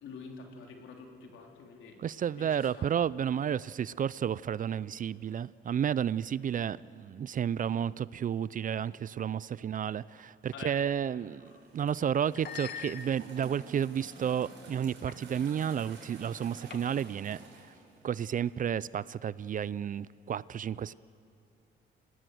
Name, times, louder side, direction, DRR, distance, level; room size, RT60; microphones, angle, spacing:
voice 1, 0.0-2.9 9.7-9.9 10.5-10.7, left 5 dB, 75° left, 2 dB, 3.4 m, -47 dB
voice 2, 2.0-17.7 18.0-20.9, right 8 dB, 40° right, 20 dB, 0.4 m, -32 dB
sound 1, 11.4-11.6 12.3-13.5 14.1-14.4 15.1-15.2 15.5-15.8 16.7-17.2, left 7 dB, 55° left, 1.4 m, -44 dB
sound 2, 11.4-18.6, right 2 dB, 65° right, 6.0 m, -51 dB
26.5 x 19.0 x 7.9 m, 2.6 s
cardioid pair, 90°, 20 cm